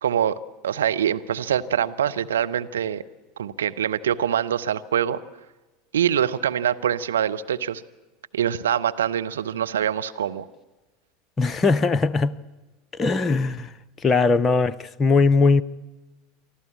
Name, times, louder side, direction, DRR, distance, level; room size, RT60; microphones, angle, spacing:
voice 1, 0.0-3.0 3.4-5.2 5.9-7.8 8.3-10.5, right 9 dB, 70° right, 0.7 m, -24 dB
voice 2, 11.4-12.4 12.9-13.7 14.0-15.6, left 4 dB, 25° left, 0.6 m, -20 dB
24.5 x 14.0 x 8.4 m
figure-of-eight pair, 80°, 0 cm